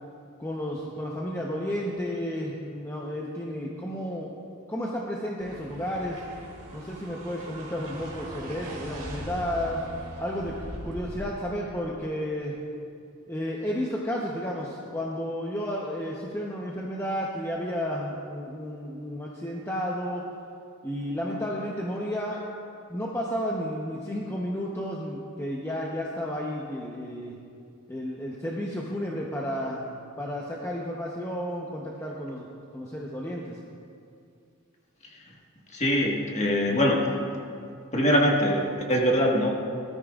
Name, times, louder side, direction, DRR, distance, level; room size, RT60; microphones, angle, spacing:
voice 1, 0.4-4.3 4.7-6.2 6.7-9.8 10.2-12.6 13.3-20.2 20.8-22.4 22.9-27.4 27.9-33.6, equal, 10° left, -4 dB, 0.8 m, -32 dB
sound 1, 5.4-11.7, equal, 35° right, 2.7 m, -40 dB
voice 2, 35.7-37.0 37.9-39.5, equal, 30° left, -2 dB, 1.6 m, -23 dB
19.0 x 13.5 x 2.4 m, 2.4 s
head